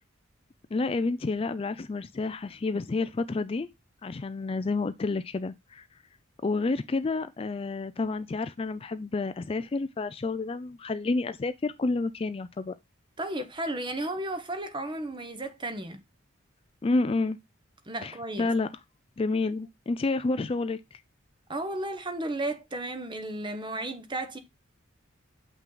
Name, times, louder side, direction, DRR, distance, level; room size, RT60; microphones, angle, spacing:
voice 1, 0.7-3.7 4.0-5.8 6.4-12.7 16.8-17.4 18.0-18.7 19.2-21.0, left 3 dB, 30° left, 0.3 m, -29 dB
voice 2, 13.2-16.0 17.9-18.5 21.5-24.4, right 1 dB, 25° right, 1.0 m, -34 dB
7.2 x 5.7 x 3.8 m
head